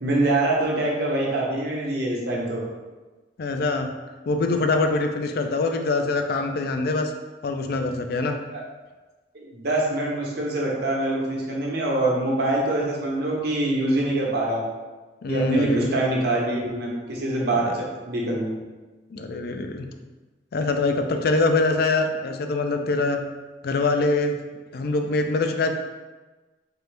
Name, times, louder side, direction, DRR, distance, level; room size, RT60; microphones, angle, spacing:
voice 1, 0.0-2.6 8.5-8.6 9.3-14.6 15.3-17.6 18.1-18.5, right 2 dB, 60° right, -3 dB, 0.9 m, -24 dB
voice 2, 3.4-3.9 4.3-7.1 7.4-8.4 15.2-15.9 17.7-17.8 19.1-19.9 20.5-23.2 23.6-24.4 24.7-25.7, left 3 dB, 55° left, 5 dB, 0.4 m, -24 dB
4.4 x 2.6 x 3.3 m, 1.2 s
head